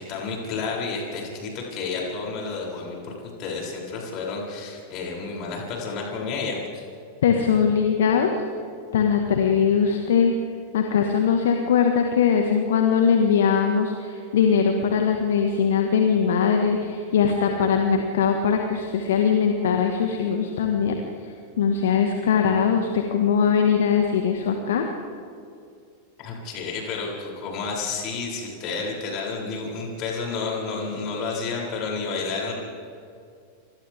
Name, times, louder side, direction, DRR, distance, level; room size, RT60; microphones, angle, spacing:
voice 1, 0.0-3.1 3.4-6.9 26.2-32.5, left 4 dB, 40° left, -2 dB, 7.6 m, -30 dB
voice 2, 7.2-8.3 8.9-10.3 10.7-21.0 21.6-24.8, left 7 dB, 60° left, 4 dB, 1.8 m, -21 dB
28.0 x 25.5 x 3.7 m, 2.4 s
figure-of-eight pair, 90°, 0 cm